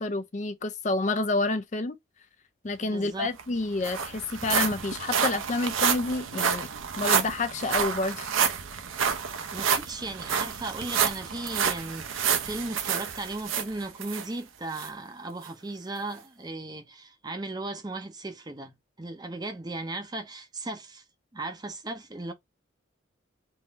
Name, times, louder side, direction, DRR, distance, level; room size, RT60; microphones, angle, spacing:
voice 1, 0.0-2.0 2.6-6.7 7.0-8.3, left 2 dB, 35° left, 0.4 m, -29 dB
voice 2, 2.8-3.3 9.5-21.0 21.3-22.3, right 2 dB, 20° right, 0.6 m, -36 dB
sound 1, 3.0-3.1 3.4-14.3 14.8-14.9 15.4-15.5, right 7 dB, 85° right, 0.7 m, -29 dB
3.8 x 2.5 x 4.0 m
head